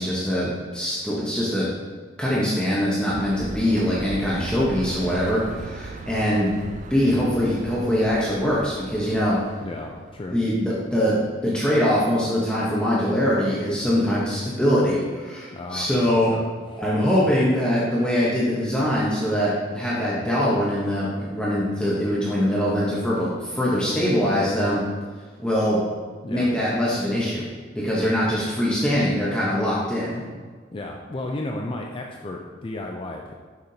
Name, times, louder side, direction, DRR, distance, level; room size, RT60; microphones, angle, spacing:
voice 1, 0.0-1.7 2.2-6.5 6.9-9.4 10.3-11.1 11.4-16.3 16.8-24.8 25.4-25.8 26.3-27.4 27.7-30.2, equal, 5° left, -7 dB, 0.9 m, -23 dB
sound 1, 3.1-10.3, right 3 dB, 40° right, 0.4 m, -38 dB
voice 2, 9.6-10.4 15.5-16.5 26.2-26.5 30.7-33.3, left 2 dB, 30° left, 1 dB, 0.4 m, -33 dB
6.5 x 5.8 x 2.8 m, 1.5 s
head